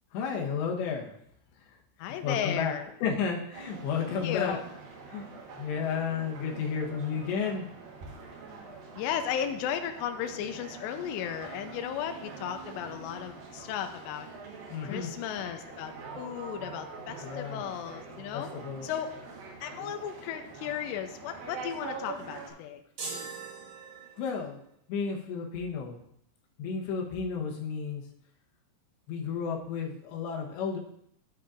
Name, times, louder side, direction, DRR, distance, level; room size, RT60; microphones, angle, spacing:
voice 1, 0.1-1.1 1.6-2.7 3.0-4.6 5.1-5.3 5.6-7.7 14.7-15.1 17.2-17.6 18.3-18.9 24.2-24.6 24.9-26.0 26.6-28.1 29.1-30.8, left 6 dB, 70° left, 0 dB, 3.1 m, -32 dB
voice 2, 2.0-2.9 4.2-4.6 9.0-14.3 14.8-18.5 18.8-19.1 19.6-22.8, left 9 dB, 90° left, 6 dB, 2.5 m, -35 dB
sound 1, 3.5-22.5, right 4 dB, 65° right, 2.5 m, -45 dB
sound 2, 23.0-24.5, right 4 dB, 50° right, 3.2 m, -41 dB
11.5 x 8.3 x 2.5 m, 0.71 s
omnidirectional pair, 5.7 m